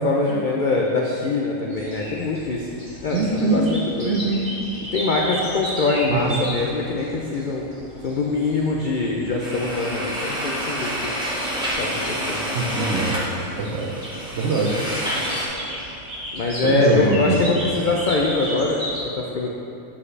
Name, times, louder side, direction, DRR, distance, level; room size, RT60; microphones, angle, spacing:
voice 1, 0.0-2.7 3.0-4.2 4.9-7.7 8.0-11.1 11.8-12.5 12.8-13.0 16.3-18.8 19.1-19.5, left 3 dB, 85° left, -1 dB, 0.4 m, -23 dB
sound 1, 1.7-19.0, equal, 35° right, 1.7 m, -35 dB
voice 2, 3.1-3.7 4.0-4.6 6.1-6.5 12.5-13.2 13.6-14.0 14.3-14.8 16.6-17.5, right 3 dB, 60° right, -2 dB, 0.8 m, -23 dB
sound 2, 9.4-15.5, equal, 5° right, 1.2 m, -28 dB
8.4 x 4.9 x 3.2 m, 2.8 s
omnidirectional pair, 1.5 m